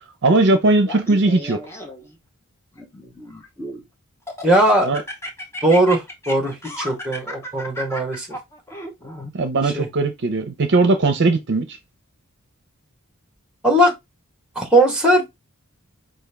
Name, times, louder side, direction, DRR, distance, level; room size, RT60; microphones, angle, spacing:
voice 1, 0.2-1.6 4.8-5.0 9.3-11.8, right 2 dB, 55° right, 0.6 m, -18 dB
Laughter, 0.8-2.1 2.7-3.8 4.3-9.3, equal, 10° left, 0.8 m, -34 dB
voice 2, 4.4-4.9 5.6-8.3 9.6-9.9 13.6-13.9 14.5-15.3, right 1 dB, 5° right, 1.2 m, -18 dB
5.0 x 2.5 x 3.3 m
head